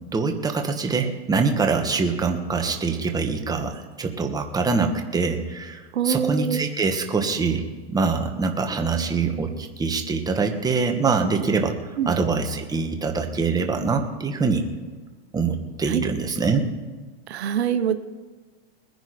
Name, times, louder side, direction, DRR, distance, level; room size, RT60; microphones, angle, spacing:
voice 1, 0.1-7.6 7.9-14.6 15.3-16.6, right 4 dB, 10° right, 4 dB, 1.4 m, -24 dB
voice 2, 5.9-6.6 12.0-12.1 15.9-16.0 17.3-18.0, right 8 dB, 80° right, 11 dB, 1.1 m, -24 dB
20.5 x 10.5 x 5.0 m, 1.4 s
hypercardioid pair, 130°, 32 cm